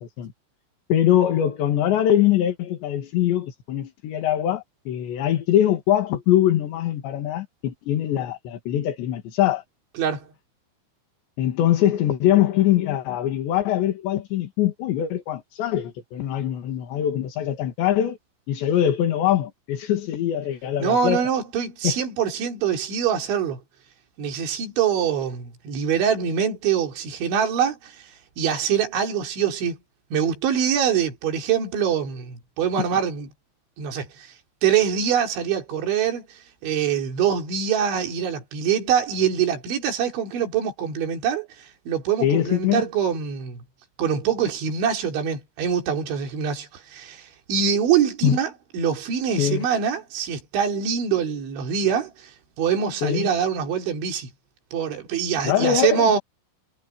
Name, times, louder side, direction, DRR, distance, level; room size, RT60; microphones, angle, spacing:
voice 1, 0.9-9.6 11.4-18.2 18.5-21.2 21.8-22.0 42.2-42.8 48.2-48.4 49.4-49.7 53.0-53.3 55.4-56.1, left 11 dB, 65° left, 4.3 m, -22 dB
voice 2, 10.0-10.3 20.8-23.6 24.2-28.0 28.4-29.8 30.1-33.3 33.8-34.3 34.6-43.6 44.0-52.3 52.6-54.3 54.7-56.2, right 8 dB, 65° right, 6.1 m, -24 dB
omnidirectional pair, 5.8 m